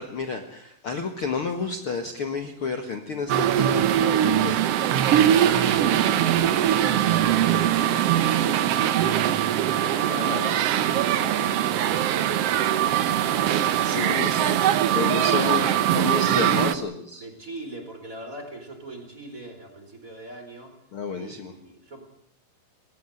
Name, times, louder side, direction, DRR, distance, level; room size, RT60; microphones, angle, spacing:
voice 1, 0.0-5.3 8.0-8.1 10.1-10.5 13.8-14.6 14.9-15.7 15.9-17.3 20.9-21.5, left 4 dB, 45° left, 6 dB, 2.0 m, -31 dB
sound 1, 3.3-16.8, right 11 dB, 75° right, 1.4 m, -22 dB
voice 2, 5.5-9.1 9.7-13.3 13.8-14.5 15.1-16.8 17.2-20.7 21.1-22.0, right 2 dB, 20° right, 5 dB, 4.5 m, -40 dB
21.0 x 19.0 x 8.1 m, 0.69 s
omnidirectional pair, 4.1 m